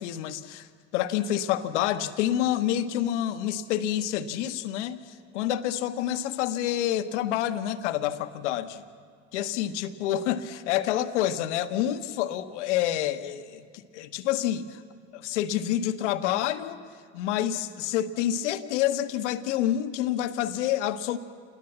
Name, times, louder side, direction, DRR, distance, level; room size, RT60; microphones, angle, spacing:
voice 1, 0.0-8.8 9.3-14.8 15.1-16.8 17.1-21.2, left 11 dB, 75° left, 11 dB, 1.2 m, -28 dB
29.0 x 20.0 x 7.4 m, 2.1 s
figure-of-eight pair, 55°, 36 cm